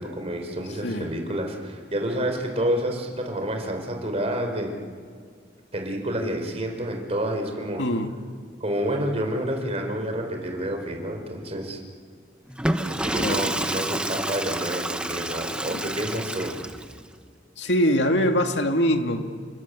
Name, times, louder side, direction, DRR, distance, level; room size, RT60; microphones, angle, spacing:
voice 1, 0.0-4.8 5.7-7.8 8.6-11.8 12.8-16.6, right 1 dB, 35° right, 3 dB, 4.8 m, -29 dB
voice 2, 7.8-8.1 13.2-13.4 15.7-15.8 17.6-19.2, equal, 80° left, 5 dB, 2.2 m, -23 dB
Water / Toilet flush, 12.5-17.0, right 1 dB, 5° right, 1.2 m, -29 dB
29.5 x 23.0 x 8.4 m, 2.1 s
head